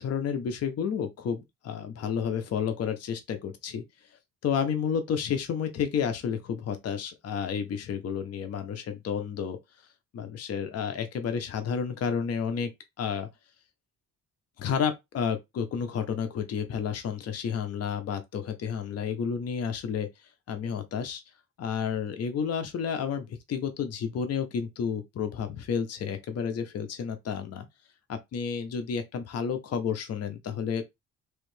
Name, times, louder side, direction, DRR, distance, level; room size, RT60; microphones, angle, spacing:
voice 1, 0.0-3.8 4.4-9.6 10.1-12.7 13.0-13.3 14.6-20.1 20.5-21.2 21.6-27.7 28.1-30.9, left 7 dB, 55° left, 0.7 m, -31 dB
3.1 x 2.7 x 3.2 m
cardioid pair, 90°, 30 cm